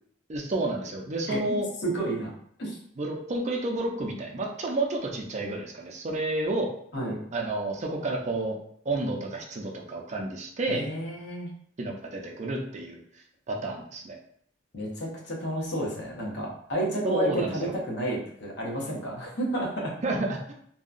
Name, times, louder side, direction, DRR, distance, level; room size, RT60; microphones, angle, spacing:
voice 1, 0.3-1.7 3.0-6.7 7.3-8.6 8.9-10.9 11.8-13.0 13.5-14.2 17.0-17.7 20.0-20.5, right 2 dB, 40° right, 0 dB, 0.5 m, -30 dB
voice 2, 1.8-2.8 6.9-7.3 10.7-11.5 14.7-19.9, right 1 dB, 65° left, -3 dB, 0.8 m, -31 dB
2.7 x 2.2 x 2.4 m, 0.65 s
head